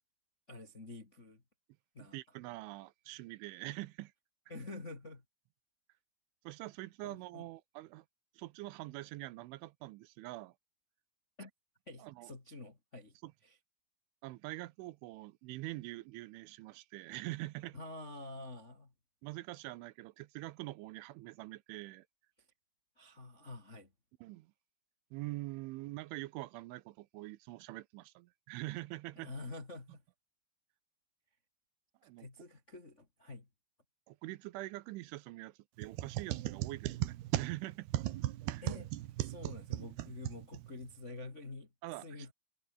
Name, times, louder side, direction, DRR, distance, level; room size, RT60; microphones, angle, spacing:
voice 1, 0.5-1.4 1.9-2.2 4.5-5.2 7.0-7.5 11.4-11.5 11.9-13.1 13.4-13.6 17.7-18.9 23.0-23.9 29.1-30.0 32.0-33.5 38.6-38.9 39.2-41.7 42.0-42.3, left 2 dB, 30° left, 1.3 m, -48 dB
voice 2, 2.0-4.1 6.4-8.1 8.4-10.5 12.0-12.3 13.2-13.3 14.2-17.8 19.2-22.1 24.2-24.5 25.1-29.3 32.0-32.3 34.1-37.9 38.5-38.7 41.8-42.3, right 19 dB, 85° right, 3.2 m, -44 dB
sound 1, 35.8-40.9, right 15 dB, 70° right, 2.7 m, -37 dB
omnidirectional pair, 5.6 m